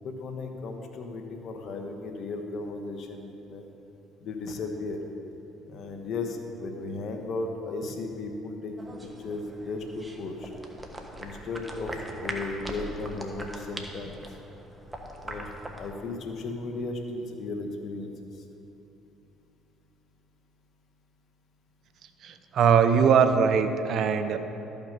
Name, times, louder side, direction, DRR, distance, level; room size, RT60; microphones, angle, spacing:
voice 1, 0.0-3.6 4.2-5.0 5.7-8.9 9.2-10.5 11.2-14.2 15.2-15.5 15.8-18.1, left 3 dB, 60° left, 4 dB, 1.2 m, -35 dB
sound 1, 8.8-15.9, right 1 dB, 15° right, 1.4 m, -41 dB
voice 2, 22.2-24.4, right 6 dB, 60° right, 9 dB, 0.6 m, -21 dB
13.0 x 5.8 x 5.4 m, 3.0 s
supercardioid pair, 70°, 0 cm